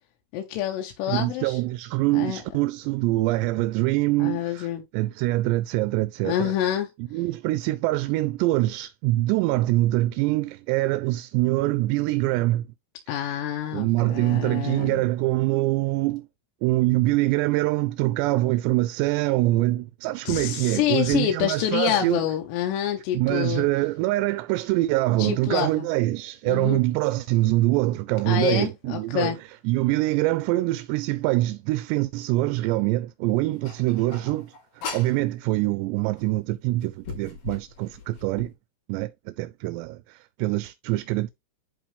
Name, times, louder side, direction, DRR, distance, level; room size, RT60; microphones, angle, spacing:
voice 1, 0.3-1.6 2.1-2.4 4.2-4.8 6.2-6.9 13.1-15.0 20.3-23.7 25.2-25.9 26.5-26.8 28.3-29.4, left 11 dB, 80° left, 3.0 m, -27 dB
voice 2, 1.1-4.7 4.9-6.5 7.1-12.7 13.2-13.4 13.7-16.3 16.6-22.2 23.1-29.3 29.6-34.5 34.9-38.5 38.9-41.3, right 18 dB, 85° right, 2.7 m, -24 dB
sound 1, 33.6-35.2 36.2-36.3 36.8-38.5, left 5 dB, 55° left, 4.8 m, -38 dB
10.5 x 3.9 x 3.3 m
omnidirectional pair, 4.9 m